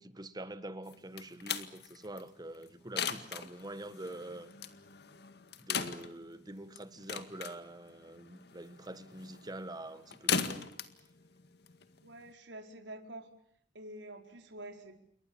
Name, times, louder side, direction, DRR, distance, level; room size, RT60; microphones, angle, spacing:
voice 1, 0.0-4.5 5.7-10.7, right 1 dB, 20° right, 1.5 m, -45 dB
sound 1, 0.9-12.3, left 7 dB, 65° left, 2.0 m, -39 dB
voice 2, 12.0-13.3 13.7-14.9, right 1 dB, 80° right, 4.6 m, -47 dB
29.0 x 23.0 x 7.2 m
head